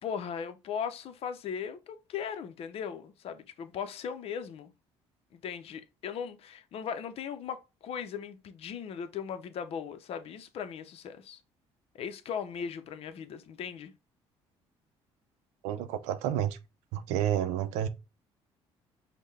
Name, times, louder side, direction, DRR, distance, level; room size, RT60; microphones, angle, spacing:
voice 1, 0.0-4.7 5.3-11.4 11.9-13.9, left 7 dB, 60° left, 0.6 m, -38 dB
voice 2, 15.6-16.6 16.9-17.9, right 10 dB, 90° right, 0.5 m, -30 dB
5.4 x 2.2 x 3.2 m
supercardioid pair, 85°, 11 cm